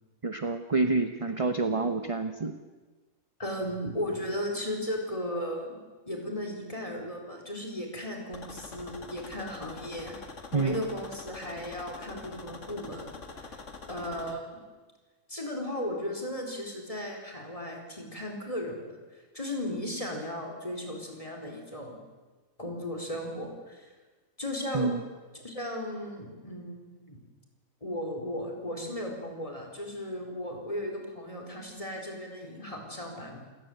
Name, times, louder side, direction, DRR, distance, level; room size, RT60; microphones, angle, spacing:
voice 1, 0.2-2.6 10.5-10.8 24.7-25.0, right 3 dB, 25° right, 8 dB, 0.9 m, -28 dB
voice 2, 3.4-5.8 6.1-10.2 10.5-13.6 13.9-14.6 15.3-19.0 19.3-22.0 22.6-23.9 24.4-24.9 25.3-27.2 27.8-33.4, left 1 dB, 25° left, 1 dB, 4.6 m, -36 dB
sound 1, 8.3-14.3, left 4 dB, 60° left, 2.2 m, -45 dB
28.5 x 16.5 x 8.1 m, 1.3 s
omnidirectional pair, 1.4 m